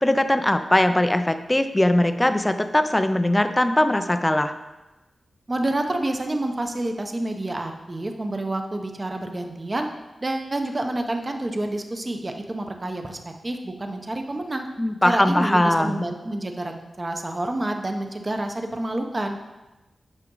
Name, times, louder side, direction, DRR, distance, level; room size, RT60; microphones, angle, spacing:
voice 1, 0.0-4.5 14.8-16.1, left 1 dB, 15° left, 9 dB, 0.5 m, -20 dB
voice 2, 5.5-9.9 10.2-14.7 15.0-19.4, right 1 dB, 25° right, 4 dB, 0.8 m, -28 dB
8.9 x 5.9 x 3.8 m, 1.1 s
wide cardioid pair, 120°, 0 cm